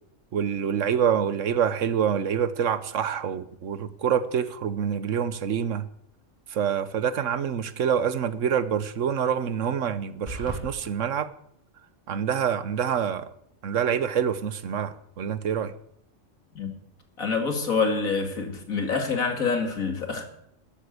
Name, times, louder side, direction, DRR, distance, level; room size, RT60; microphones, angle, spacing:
voice 1, 0.3-5.9 6.5-11.3 12.1-13.3 13.6-15.7, right 8 dB, 70° right, 1.3 m, -26 dB
sound 1, 10.3-10.7, right 1 dB, 25° right, 4.0 m, -34 dB
voice 2, 17.2-20.2, left 4 dB, 85° left, 2.9 m, -26 dB
13.0 x 10.5 x 8.3 m
omnidirectional pair, 1.4 m